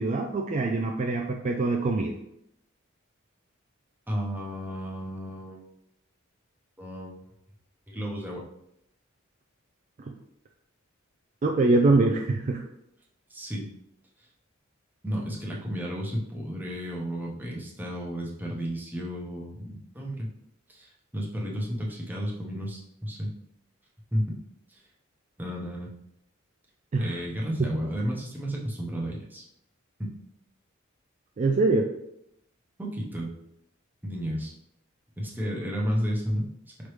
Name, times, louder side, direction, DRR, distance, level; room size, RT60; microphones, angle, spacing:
voice 1, 0.0-2.2 11.4-12.6 26.9-27.2 27.6-27.7 31.4-31.9, right 3 dB, 35° right, 2 dB, 0.3 m, -24 dB
voice 2, 4.1-5.6 6.8-7.1 7.9-8.4 13.3-13.7 15.0-20.3 20.7-23.3 24.1-24.3 25.4-25.9 27.0-29.4 30.0-30.1 32.8-33.3 34.0-34.5 35.2-36.5, equal, 10° right, -3 dB, 0.8 m, -32 dB
5.2 x 3.2 x 3.1 m, 0.77 s
head